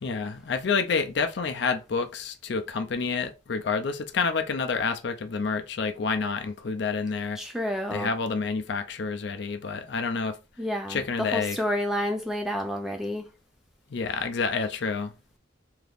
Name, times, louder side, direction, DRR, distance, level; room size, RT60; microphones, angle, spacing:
voice 1, 0.0-7.4 7.9-10.4 10.9-11.6 13.9-15.1, left 5 dB, 60° left, 0.4 m, -28 dB
voice 2, 7.3-8.1 10.6-13.3, equal, ahead, 0.3 m, -30 dB
2.8 x 2.5 x 3.4 m
head